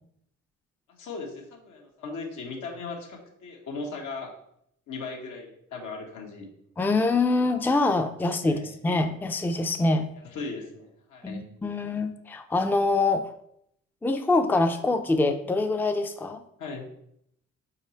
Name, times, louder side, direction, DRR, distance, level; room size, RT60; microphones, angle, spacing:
voice 1, 0.9-4.3 4.9-6.5 8.4-8.7 10.1-11.4 16.6-16.9, left 4 dB, 80° left, 0 dB, 1.7 m, -38 dB
voice 2, 6.8-10.1 11.2-13.3 14.0-16.4, left 2 dB, 5° left, 7 dB, 0.5 m, -25 dB
5.7 x 4.1 x 4.4 m, 0.72 s
cardioid pair, 90°, 30 cm